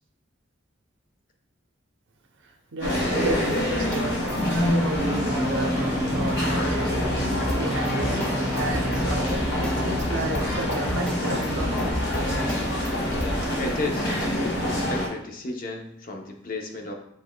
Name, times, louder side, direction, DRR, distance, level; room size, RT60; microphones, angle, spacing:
voice 1, 2.7-7.1 7.5-12.0, right 2 dB, 75° right, 3 dB, 0.7 m, -33 dB
sound 1, 2.8-15.1, equal, 80° left, 1.5 m, -26 dB
sound 2, 3.7-4.6 7.5-10.1 10.3-13.3, equal, 5° left, 0.3 m, -33 dB
sound 3, 5.0-14.6, left 1 dB, 15° right, 0.7 m, -32 dB
voice 2, 13.6-14.1 14.9-16.9, left 2 dB, 45° left, 2 dB, 0.6 m, -32 dB
7.1 x 3.3 x 2.2 m, 0.75 s
head